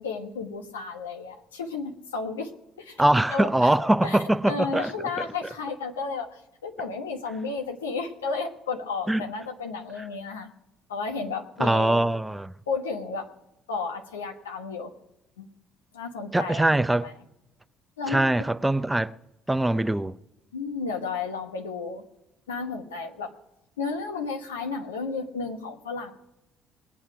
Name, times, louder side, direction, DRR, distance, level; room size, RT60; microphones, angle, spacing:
voice 1, 0.0-2.5 2.8-3.0 3.3-3.7 4.0-10.5 10.9-12.1 12.7-13.3 13.7-14.9 15.4-15.5 15.9-17.1 18.0-18.3 20.5-22.0 22.5-23.3 23.8-26.1, left 4 dB, 90° left, 1.2 m, -33 dB
voice 2, 3.0-4.9 9.1-9.2 11.6-12.5 16.3-17.1 18.1-19.1 19.5-20.2, right 1 dB, 10° right, 0.6 m, -22 dB
21.0 x 8.7 x 4.8 m
hypercardioid pair, 55°, 0 cm